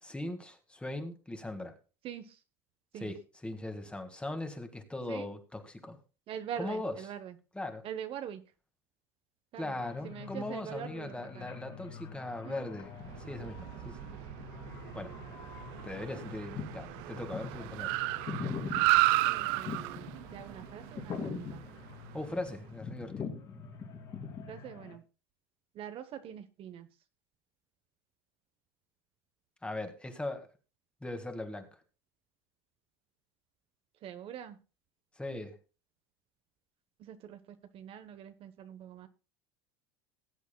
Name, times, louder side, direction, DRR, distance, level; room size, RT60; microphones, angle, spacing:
voice 1, 0.0-1.7 2.9-6.0 6.6-7.1 7.5-7.9 9.6-12.9 13.2-14.0 14.9-15.2 15.8-18.0 22.1-23.3 29.6-30.5 31.0-31.7 35.2-35.6, left 2 dB, 10° left, 7 dB, 1.8 m, -39 dB
voice 2, 2.0-2.4 2.9-3.1 5.1-5.3 6.3-7.3 7.8-8.4 9.5-9.8 10.0-11.5 12.4-12.5 19.2-21.6 24.5-25.0 25.7-26.9 34.0-34.6 37.0-37.4 37.7-39.1, right 9 dB, 50° right, 10 dB, 1.0 m, -43 dB
sound 1, 9.8-25.0, left 5 dB, 35° left, 2.8 m, -44 dB
Car, 12.9-22.5, right 19 dB, 70° right, 0.6 m, -33 dB
19.0 x 8.2 x 2.2 m, 0.32 s
supercardioid pair, 105°, 12 cm